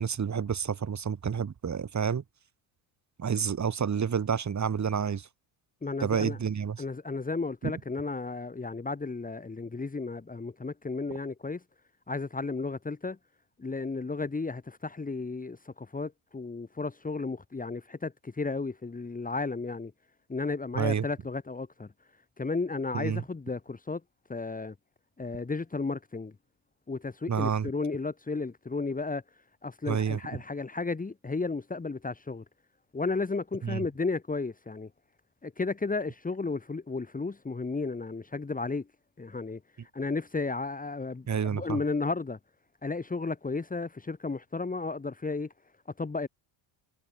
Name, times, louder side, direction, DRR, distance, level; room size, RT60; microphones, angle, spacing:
voice 1, 0.0-2.2 3.2-5.3 6.0-6.8 7.6-7.7 20.7-21.0 22.9-23.2 27.3-27.7 29.9-30.2 33.6-33.8 41.3-41.8, right 7 dB, 35° right, 6.3 m, -29 dB
voice 2, 5.8-6.4 6.8-11.6 12.1-13.2 13.6-19.9 20.3-21.9 22.4-24.0 24.3-24.7 25.2-26.3 26.9-29.2 29.6-32.4 32.9-34.9 35.4-38.8 39.2-39.6 39.9-42.4 42.8-45.5 46.0-46.3, left 3 dB, 15° left, 3.0 m, -33 dB
cardioid pair, 120°, 50 cm